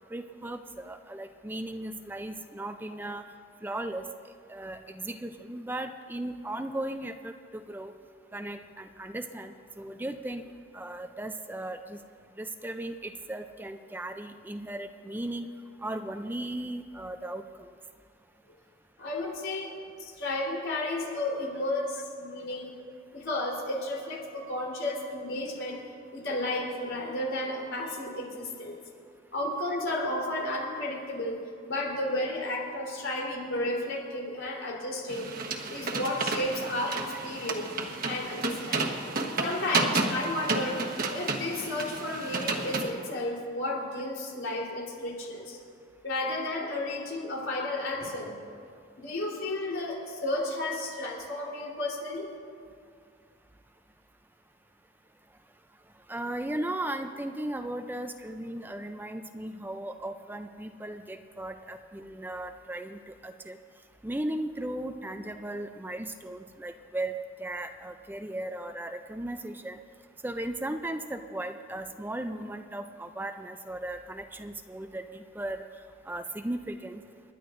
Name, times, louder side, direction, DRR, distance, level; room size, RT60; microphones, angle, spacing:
voice 1, 0.0-3.2 3.6-4.0 4.5-7.9 8.3-10.4 10.7-12.0 12.4-15.5 15.8-17.4 56.1-63.6 64.0-69.8 70.2-75.6 76.1-77.0, right 1 dB, 10° right, 7 dB, 0.4 m, -36 dB
voice 2, 19.0-19.7 20.2-22.8 23.1-25.8 26.1-28.8 29.3-31.4 31.7-35.3 35.7-37.7 38.0-39.0 39.4-40.8 41.1-45.6 46.0-48.3 49.0-52.3, left 1 dB, 85° left, -3 dB, 3.7 m, -32 dB
sound 1, 35.1-42.9, right 3 dB, 50° right, 1.2 m, -32 dB
29.5 x 11.0 x 2.6 m, 2.3 s
head